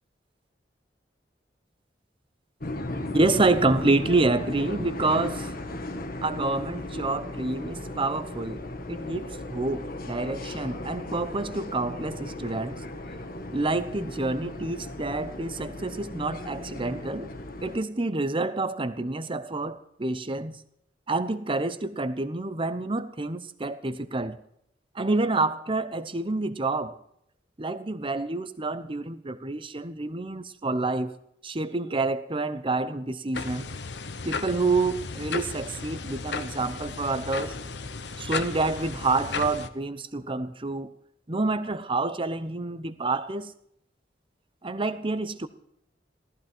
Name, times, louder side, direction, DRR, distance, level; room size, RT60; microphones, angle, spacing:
sound 1, 2.6-17.8, left 1 dB, 55° left, 1.5 m, -36 dB
voice 1, 3.1-5.5 6.2-12.8 13.5-17.3 17.6-20.6 21.1-24.4 24.9-27.0 27.6-31.1 31.4-33.7 34.2-37.6 38.2-40.9 41.3-43.5 44.6-45.5, right 3 dB, 30° right, 0.9 m, -28 dB
sound 2, 33.3-39.7, left 4 dB, 75° left, 1.0 m, -35 dB
15.0 x 14.5 x 4.5 m
head